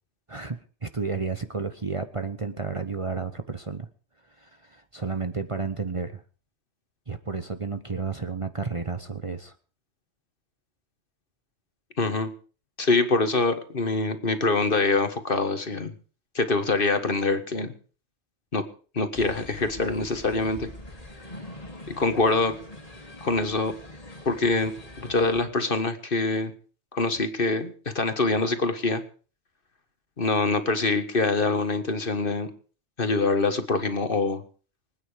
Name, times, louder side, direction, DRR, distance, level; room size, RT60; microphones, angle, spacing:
voice 1, 0.3-3.9 4.4-6.2 7.1-9.5, right 4 dB, 30° right, 9 dB, 1.0 m, -32 dB
voice 2, 12.0-12.3 12.8-15.9 16.4-17.7 18.5-18.6 18.9-20.7 21.9-22.6 23.2-23.7 24.3-24.7 25.0-26.5 26.9-29.0 30.2-32.5 33.0-34.4, left 3 dB, 50° left, 9 dB, 1.8 m, -24 dB
sound 1, 19.1-25.5, left 1 dB, 30° left, 2.9 m, -43 dB
24.5 x 9.5 x 5.1 m, 0.39 s
omnidirectional pair, 1.2 m